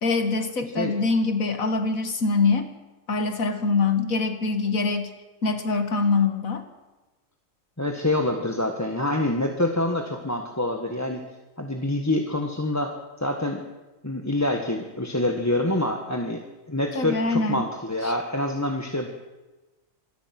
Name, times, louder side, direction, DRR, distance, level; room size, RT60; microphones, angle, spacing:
voice 1, 0.0-2.7 3.1-5.1 5.4-6.7 16.9-17.7 18.0-18.1, left 4 dB, 75° left, 8 dB, 2.3 m, -24 dB
voice 2, 7.8-11.2 11.6-12.9 13.2-13.6 14.0-19.1, left 1 dB, 10° left, 3 dB, 1.6 m, -26 dB
26.0 x 21.0 x 6.1 m, 1.1 s
omnidirectional pair, 1.4 m